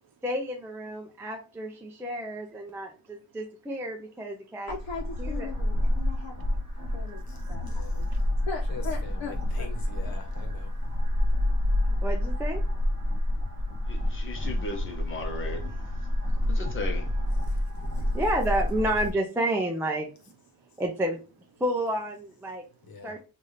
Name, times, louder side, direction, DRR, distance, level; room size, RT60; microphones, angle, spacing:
voice 1, 0.2-4.7 5.2-5.5 11.9-12.6 18.1-20.1 20.8-21.2 21.6-22.6 23.0-23.2, right 1 dB, 5° right, 0.4 m, -30 dB
voice 2, 4.7-6.4 6.9-7.2 7.5-8.1 8.5-9.7, left 4 dB, 85° left, 0.8 m, -38 dB
sound 1, 4.7-19.1, left 1 dB, 30° right, 1.5 m, -28 dB
voice 3, 6.0-6.3 6.9-7.0 7.5-7.8 8.1-8.2 11.1-12.0 13.1-14.5 16.0-16.6 17.4-17.5 17.8-18.2 20.5-20.8 22.9-23.0, right 8 dB, 55° right, 0.5 m, -62 dB
voice 4, 7.2-8.3 8.7-10.9 17.4-18.2 22.8-23.2, left 5 dB, 55° left, 1.0 m, -46 dB
voice 5, 13.9-15.9 16.5-17.1, left 2 dB, 30° left, 0.8 m, -37 dB
3.3 x 2.5 x 4.0 m
wide cardioid pair, 180°, 43 cm